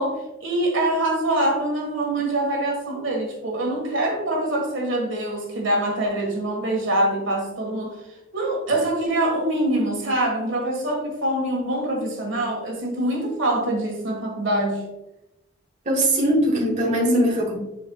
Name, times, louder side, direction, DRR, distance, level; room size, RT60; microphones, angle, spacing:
voice 1, 0.0-7.9 8.3-14.8, right 1 dB, 75° right, 0 dB, 1.7 m, -24 dB
voice 2, 15.8-17.6, right 1 dB, 35° right, -2 dB, 1.5 m, -20 dB
10.0 x 4.4 x 2.3 m, 0.95 s
head